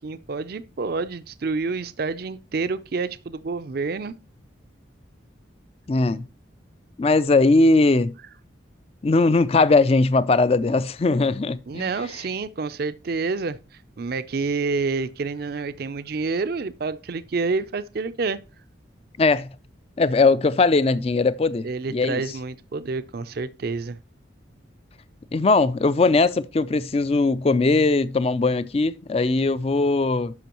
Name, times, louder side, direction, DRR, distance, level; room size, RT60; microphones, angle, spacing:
voice 1, 0.0-4.1 11.7-13.6 14.0-18.4 21.6-24.0, right 4 dB, 50° right, 0.4 m, -28 dB
voice 2, 5.9-6.3 7.0-8.1 9.0-11.9 19.2-19.5 20.0-22.2 25.3-30.3, left 3 dB, 30° left, 0.3 m, -20 dB
12.0 x 5.4 x 3.0 m
head